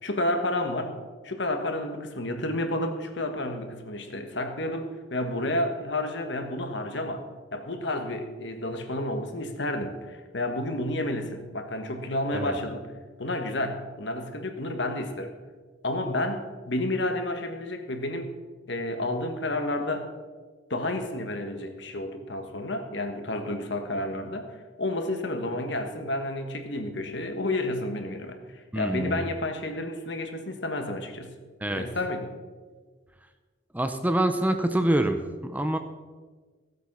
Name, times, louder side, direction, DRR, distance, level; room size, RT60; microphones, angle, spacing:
voice 1, 0.0-0.9 1.2-7.2 7.5-12.8 13.2-15.3 15.8-18.3 18.7-20.1 20.7-24.5 24.8-31.3 31.8-32.3, left 1 dB, 65° left, 5 dB, 1.5 m, -30 dB
voice 2, 28.7-29.2 31.6-31.9 33.7-35.8, right 1 dB, 10° right, 7 dB, 0.6 m, -26 dB
16.0 x 8.2 x 6.1 m, 1.4 s
head